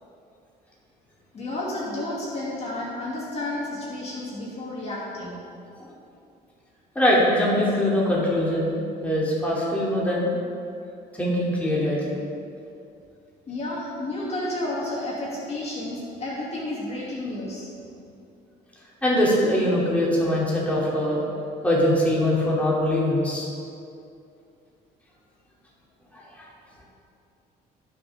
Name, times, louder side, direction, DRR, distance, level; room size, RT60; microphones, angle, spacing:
voice 1, 1.3-5.4 13.5-17.7, left 1 dB, 40° left, -6 dB, 2.7 m, -31 dB
voice 2, 6.9-8.7 9.0-10.3 11.1-12.2 19.0-21.2 21.6-23.5 26.1-26.5, left 1 dB, 10° left, -6 dB, 2.9 m, -22 dB
17.5 x 6.7 x 3.6 m, 2.5 s
cardioid pair, 110°, 17 cm